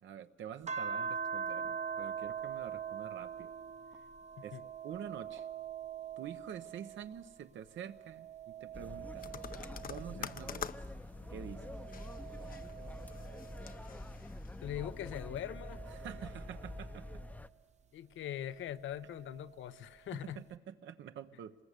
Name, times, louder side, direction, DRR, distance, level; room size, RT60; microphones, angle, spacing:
voice 1, 0.0-3.5 4.4-4.6 4.8-5.5 6.2-9.3 9.8-10.7 11.3-11.6 15.9-17.2 20.1-21.6, right 9 dB, 70° right, 1.0 m, -47 dB
sound 1, 0.7-7.4 7.8-10.7 11.3-14.1 14.8-17.3 18.6-19.7, right 7 dB, 35° right, 0.8 m, -44 dB
sound 2, 8.7-17.5, left 1 dB, 10° left, 0.7 m, -46 dB
sound 3, 9.2-15.0, left 8 dB, 45° left, 0.7 m, -48 dB
voice 2, 14.6-15.8 17.9-20.4, left 11 dB, 75° left, 0.8 m, -42 dB
25.5 x 20.5 x 8.3 m
cardioid pair, 90°, 20 cm